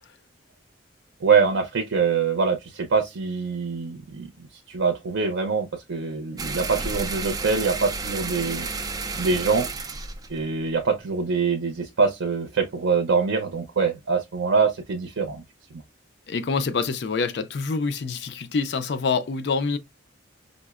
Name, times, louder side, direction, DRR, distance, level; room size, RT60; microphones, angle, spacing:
voice 1, 1.2-8.7 9.1-9.7 10.3-15.4, right 5 dB, 85° right, 0.5 m, -24 dB
sound 1, 6.4-11.3, right 3 dB, 20° right, 0.3 m, -32 dB
voice 2, 16.3-19.8, left 4 dB, 55° left, 0.4 m, -26 dB
5.1 x 2.0 x 2.3 m
head